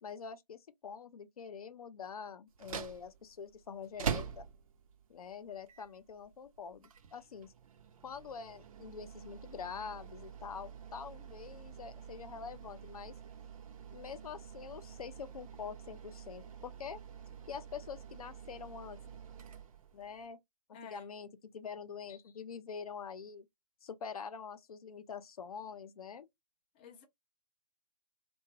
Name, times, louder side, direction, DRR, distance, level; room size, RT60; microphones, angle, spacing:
voice 1, 0.0-4.5 5.1-7.5 8.0-13.1 13.9-17.0 17.5-19.0 19.9-20.4 20.7-23.5 23.8-26.3, left 6 dB, 60° left, 0.6 m, -45 dB
sound 1, 2.5-20.3, right 7 dB, 55° right, 0.6 m, -46 dB
voice 2, 20.7-21.1 26.7-27.0, left 6 dB, 15° left, 0.3 m, -51 dB
2.8 x 2.3 x 2.7 m
figure-of-eight pair, 140°, 21 cm